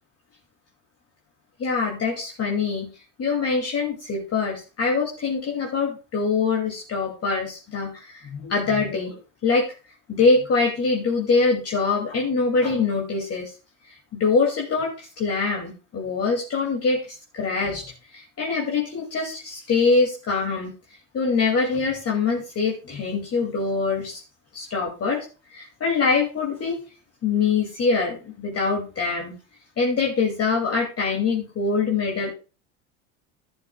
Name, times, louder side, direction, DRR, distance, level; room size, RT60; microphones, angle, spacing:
voice 1, 1.6-2.9 3.2-9.7 10.1-13.5 13.9-17.8 18.1-20.7 21.1-24.2 24.5-25.2 25.5-26.8 27.2-29.4 29.8-32.3, left 4 dB, 35° left, -1 dB, 2.8 m, -24 dB
11.5 x 11.5 x 2.4 m, 0.33 s
hypercardioid pair, 75°, 41 cm